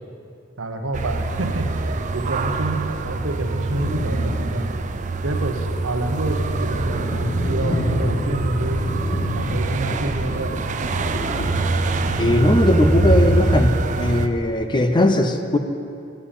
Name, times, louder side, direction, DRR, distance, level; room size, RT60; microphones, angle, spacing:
voice 1, 0.6-1.7 2.1-4.7 5.2-8.8 9.3-10.6, right 2 dB, 85° right, 4 dB, 0.9 m, -28 dB
sound 1, 0.9-14.3, right 3 dB, 40° right, 0.4 m, -25 dB
sound 2, 3.7-4.6 5.0-5.1 5.8-13.7, left 1 dB, 75° left, 2.3 m, -26 dB
voice 2, 12.2-13.7 14.0-15.6, left 1 dB, 25° left, 7 dB, 0.5 m, -19 dB
9.1 x 7.2 x 7.1 m, 2.5 s
head